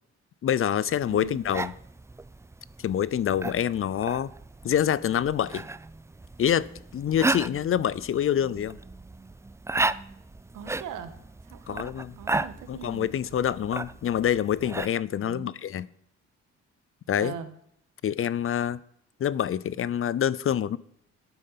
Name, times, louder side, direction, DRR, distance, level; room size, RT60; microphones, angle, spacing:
voice 1, 0.4-1.7 2.8-4.3 4.6-5.6 6.4-8.8 11.7-12.1 12.7-15.9 17.1-17.4 18.0-18.8 19.2-20.8, left 9 dB, 45° left, 0.6 m, -26 dB
sound 1, 0.9-14.9, right 3 dB, 10° right, 0.4 m, -35 dB
voice 2, 1.1-1.4 10.5-11.1 11.4-13.1 15.2-15.5 17.2-17.5, right 8 dB, 85° right, 1.5 m, -41 dB
12.5 x 8.9 x 5.8 m
cardioid pair, 90°, 30 cm